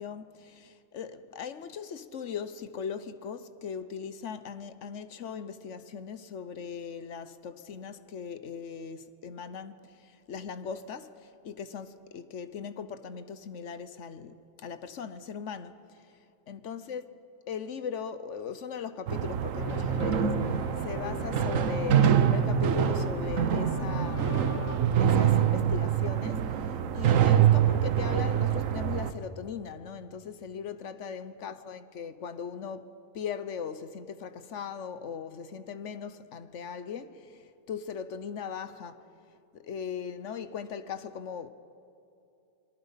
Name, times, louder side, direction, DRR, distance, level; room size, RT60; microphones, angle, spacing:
voice 1, 0.0-15.8 16.5-17.0 17.5-24.4 25.0-39.0 39.5-41.5, left 7 dB, 60° left, 1.1 m, -39 dB
sound 1, 19.1-29.1, right 9 dB, 70° right, 1.2 m, -25 dB
sound 2, 19.6-24.8, left 5 dB, 85° left, 2.0 m, -37 dB
26.5 x 22.0 x 5.7 m
omnidirectional pair, 1.4 m